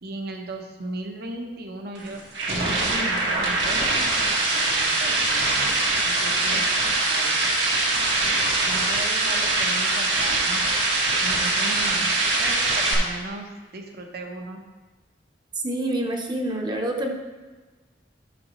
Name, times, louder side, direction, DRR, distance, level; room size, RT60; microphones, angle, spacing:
voice 1, 0.0-2.2 2.5-4.3 4.7-5.7 6.1-6.7 7.0-7.4 8.6-10.6 11.2-12.1 12.4-14.6, right 2 dB, 60° right, 3 dB, 0.8 m, -36 dB
sound 1, 1.9-12.9, right 2 dB, 85° right, 1.7 m, -23 dB
voice 2, 15.6-17.1, right 1 dB, 25° right, 1 dB, 0.8 m, -27 dB
10.5 x 6.3 x 3.0 m, 1.3 s
head